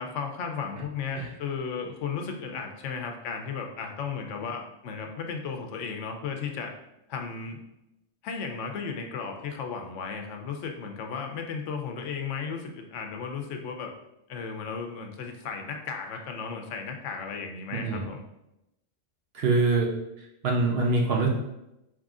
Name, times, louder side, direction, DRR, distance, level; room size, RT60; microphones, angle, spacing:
voice 1, 0.0-6.7 7.1-7.6 8.2-13.9 14.3-18.2, left 5 dB, 75° left, 3 dB, 0.9 m, -35 dB
voice 2, 17.7-18.1 19.3-21.3, right 3 dB, 60° right, -1 dB, 0.8 m, -25 dB
4.6 x 3.7 x 2.4 m, 0.89 s
omnidirectional pair, 1.3 m